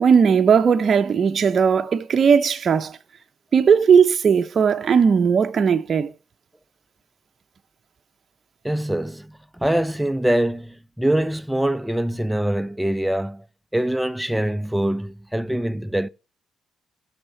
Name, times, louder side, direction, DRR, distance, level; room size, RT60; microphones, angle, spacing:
voice 1, 0.0-3.0 3.5-6.1, right 6 dB, 50° right, 0.7 m, -17 dB
voice 2, 8.6-13.4 13.7-16.1, right 1 dB, 5° right, 0.5 m, -24 dB
16.5 x 6.6 x 3.1 m
cardioid pair, 90°, 0 cm